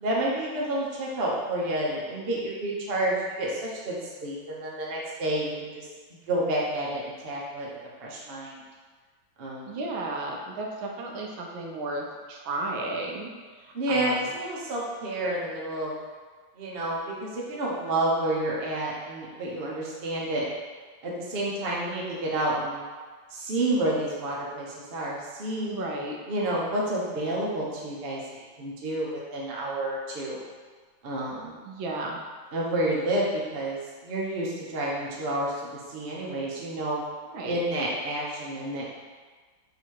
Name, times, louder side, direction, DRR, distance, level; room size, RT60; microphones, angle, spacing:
voice 1, 0.0-7.7 8.0-8.6 9.4-9.8 13.7-15.9 16.6-20.5 21.0-22.8 23.3-25.7 26.3-28.2 28.6-30.4 31.0-31.6 32.5-35.5 35.9-37.0 37.4-38.8, right 1 dB, 45° right, -4 dB, 0.7 m, -29 dB
voice 2, 9.7-13.3 13.6-14.3 25.6-26.2 31.7-32.2 37.3-37.6, right 2 dB, 85° right, 0 dB, 1.5 m, -33 dB
4.0 x 2.9 x 4.5 m, 1.5 s
omnidirectional pair, 2.1 m